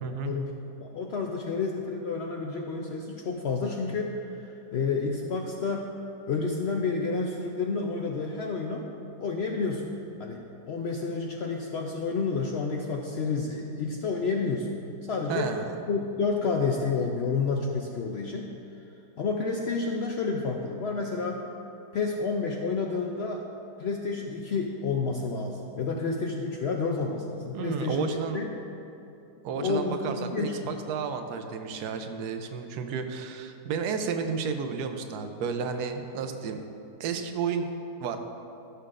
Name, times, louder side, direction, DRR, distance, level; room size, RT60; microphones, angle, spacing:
voice 1, 0.0-0.3 15.3-15.8 27.5-28.4 29.4-36.6 37.0-37.6 38.0-38.2, right 6 dB, 75° right, 6 dB, 1.2 m, -32 dB
voice 2, 0.8-5.9 6.3-8.9 9.2-9.9 10.2-14.8 15.1-15.5 15.9-18.5 19.2-21.4 21.9-23.4 23.8-28.5 29.5-30.5, left 4 dB, 85° left, 0 dB, 0.5 m, -30 dB
14.5 x 6.8 x 2.5 m, 2.9 s
omnidirectional pair, 1.8 m